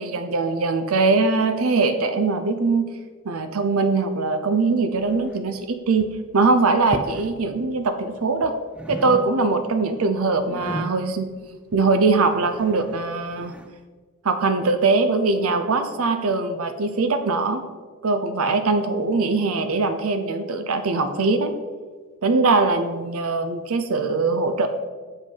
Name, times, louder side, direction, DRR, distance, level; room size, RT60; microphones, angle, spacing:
voice 1, 0.0-2.9 3.3-8.5 8.9-11.3 11.7-13.5 14.2-17.6 18.0-21.5 22.2-24.7, right 3 dB, 70° right, 8 dB, 0.6 m, -21 dB
sound 1, 4.9-5.6 5.9-6.3 6.8-7.4 7.6-8.5 8.8-9.7 10.0-13.8, equal, 5° right, 0.4 m, -36 dB
8.4 x 5.2 x 5.5 m, 1.4 s
head